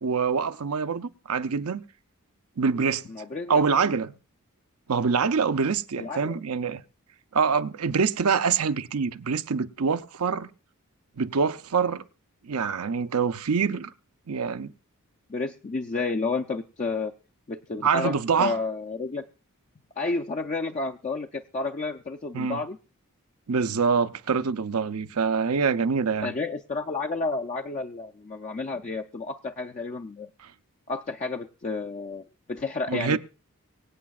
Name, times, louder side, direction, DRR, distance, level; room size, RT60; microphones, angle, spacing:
voice 1, 0.0-1.8 2.6-3.1 3.5-4.1 4.9-6.8 7.3-10.5 11.2-12.0 12.4-13.9 14.3-14.7 17.8-18.6 22.3-22.6 23.5-26.3 30.4-30.5 32.9-33.2, right 5 dB, 85° right, 0.6 m, -25 dB
voice 2, 3.1-3.9 6.0-6.4 15.3-17.1 17.5-19.2 20.0-22.8 26.2-30.3 30.9-33.2, left 3 dB, 35° left, 0.4 m, -31 dB
24.5 x 8.4 x 2.4 m
head